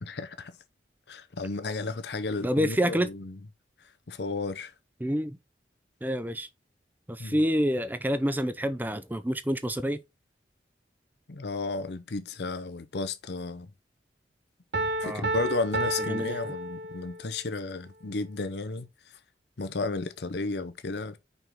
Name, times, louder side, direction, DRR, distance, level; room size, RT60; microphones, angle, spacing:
voice 1, 0.0-0.5 1.1-3.4 3.8-4.7 7.2-7.5 11.3-13.7 15.0-19.2 19.6-21.2, left 3 dB, 70° left, 0.7 m, -33 dB
voice 2, 2.4-3.1 5.0-5.4 6.0-6.5 7.1-10.0 15.0-15.3 16.1-16.4, equal, 10° right, 0.5 m, -27 dB
Piano, 14.7-17.3, right 1 dB, 75° right, 0.7 m, -31 dB
5.8 x 5.5 x 3.6 m
head